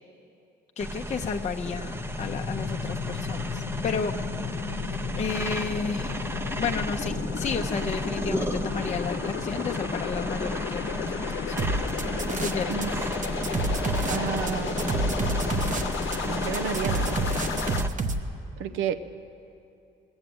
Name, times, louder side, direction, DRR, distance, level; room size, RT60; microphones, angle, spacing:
voice 1, 0.8-4.2 5.1-6.2 6.6-11.6 12.4-12.7, left 5 dB, 35° left, 4 dB, 0.6 m, -32 dB
sound 1, 0.8-17.9, right 1 dB, 10° right, 0.6 m, -33 dB
sound 2, 1.3-17.8, left 7 dB, 70° left, 0.8 m, -34 dB
sound 3, 11.6-12.9 13.1-18.2, right 3 dB, 40° right, 0.8 m, -28 dB
voice 2, 14.1-14.9 16.3-17.2 18.6-19.0, right 8 dB, 90° right, 11 dB, 0.6 m, -31 dB
19.5 x 7.9 x 7.9 m, 2.6 s
cardioid pair, 90°, 20 cm